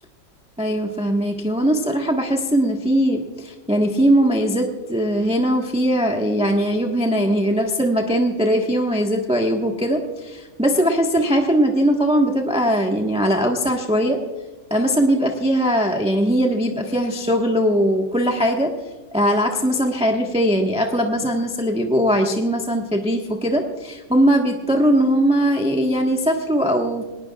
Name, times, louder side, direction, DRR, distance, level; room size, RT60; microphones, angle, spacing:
voice 1, 0.6-14.2 14.7-18.7 19.1-27.0, equal, 5° right, 1 dB, 1.1 m, -20 dB
22.0 x 19.0 x 2.4 m, 1.3 s
omnidirectional pair, 1.9 m